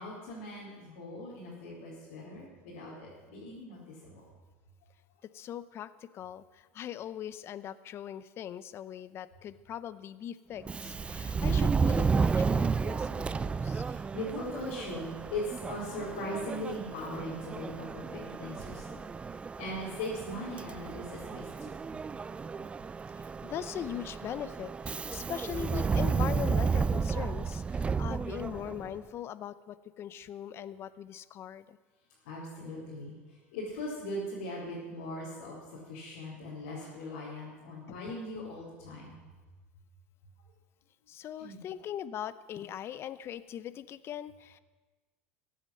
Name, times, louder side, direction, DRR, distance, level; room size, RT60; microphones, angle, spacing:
voice 1, 0.0-4.2 11.3-11.5 13.8-19.0 19.3-21.7 32.2-33.2 33.5-39.1 41.4-41.6, left 1 dB, 85° left, -8 dB, 4.5 m, -40 dB
voice 2, 5.3-13.8 23.1-31.8 37.9-38.1 41.1-44.6, left 10 dB, 40° left, 16 dB, 0.7 m, -41 dB
Subway metro underground, 10.6-29.0, right 5 dB, 15° right, 0.4 m, -32 dB
15.0 x 8.7 x 7.8 m, 1.3 s
supercardioid pair, 120°, 6 cm